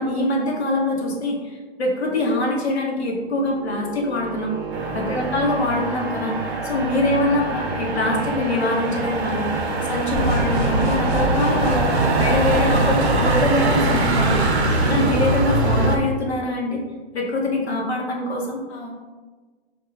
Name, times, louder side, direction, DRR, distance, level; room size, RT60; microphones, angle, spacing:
voice 1, 0.0-4.5 4.9-14.4 14.8-16.8 17.1-18.6, left 1 dB, 90° left, -1 dB, 0.8 m, -24 dB
sound 1, 3.0-16.0, right 3 dB, 20° right, 0.5 m, -34 dB
voice 2, 4.7-5.1 14.6-14.9 18.7-18.9, left 6 dB, 30° left, -3 dB, 0.6 m, -38 dB
Motor vehicle (road), 4.7-16.0, right 2 dB, 85° right, 0.5 m, -24 dB
sound 2, 10.1-14.5, right 1 dB, 40° right, 0.9 m, -23 dB
3.1 x 2.2 x 2.3 m, 1.4 s
hypercardioid pair, 140°, 32 cm